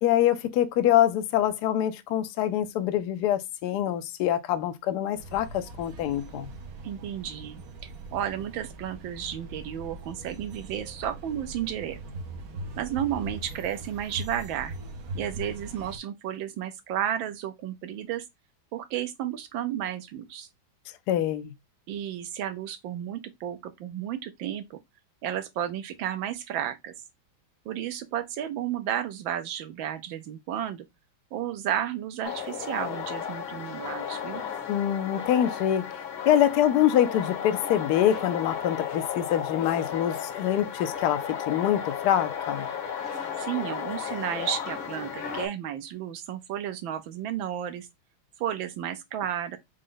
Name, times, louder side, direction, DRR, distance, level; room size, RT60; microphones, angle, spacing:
voice 1, 0.0-6.5 21.1-21.5 34.7-35.9 36.2-42.7, left 11 dB, 70° left, 1.0 m, -25 dB
sound 1, 5.2-16.0, right 2 dB, 55° right, 1.0 m, -41 dB
voice 2, 6.8-12.0 12.8-14.7 15.1-18.2 18.7-20.5 21.9-24.8 25.2-26.9 27.6-30.9 31.3-34.4 43.4-47.9 48.4-49.6, right 10 dB, 75° right, 1.4 m, -32 dB
sound 2, 32.2-45.5, left 8 dB, 90° left, 1.8 m, -34 dB
5.0 x 2.2 x 3.7 m
omnidirectional pair, 2.2 m